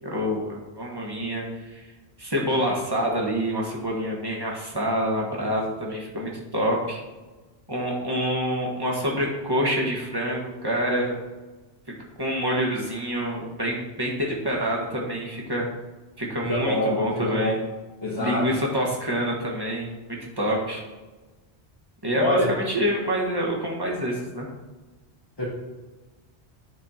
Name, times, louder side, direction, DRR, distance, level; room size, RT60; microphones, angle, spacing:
voice 1, 0.0-1.9 2.2-7.0 7.7-11.2 12.2-15.7 16.2-17.6 18.2-19.9 20.4-20.8 22.0-24.5, equal, 20° right, -2 dB, 1.4 m, -27 dB
voice 2, 16.4-17.6 18.0-18.5 22.2-22.5 25.4-25.5, left 1 dB, 25° left, -5 dB, 1.3 m, -25 dB
9.5 x 4.4 x 4.3 m, 1.2 s
omnidirectional pair, 1.1 m